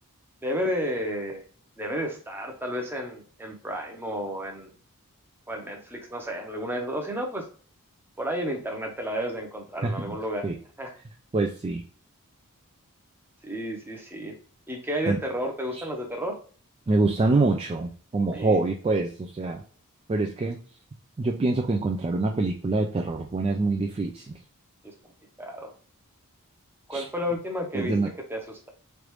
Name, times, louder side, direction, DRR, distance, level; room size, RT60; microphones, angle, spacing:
voice 1, 0.4-1.4 1.8-4.7 5.5-7.5 8.2-10.5 10.8-10.9 13.4-14.4 14.7-16.4 18.3-18.6 24.8-24.9 25.4-25.7 26.9-27.9 28.3-28.7, equal, 10° right, 2 dB, 0.7 m, -32 dB
voice 2, 9.8-10.2 10.4-10.6 11.3-11.8 15.1-15.2 15.7-15.8 16.9-19.6 20.1-20.6 21.2-24.3 26.9-27.0 27.7-28.1, right 3 dB, 25° right, 2 dB, 0.3 m, -25 dB
3.3 x 2.4 x 3.1 m, 0.43 s
head